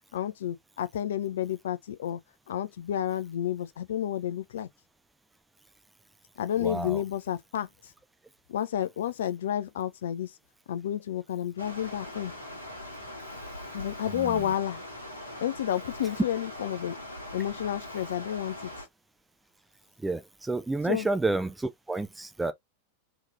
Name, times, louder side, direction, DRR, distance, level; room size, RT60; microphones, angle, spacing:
voice 1, 0.1-2.2 2.5-4.7 6.4-7.7 8.5-10.3 10.7-12.3 13.7-14.8 15.4-17.0 17.3-18.7 20.8-21.1, left 10 dB, 60° left, 0.4 m, -31 dB
voice 2, 6.6-7.0 14.2-14.4 20.0-22.5, right 2 dB, 10° right, 0.5 m, -30 dB
Stream, 11.6-18.9, left 1 dB, 85° left, 1.4 m, -41 dB
3.6 x 3.0 x 2.5 m
figure-of-eight pair, 90°, 0 cm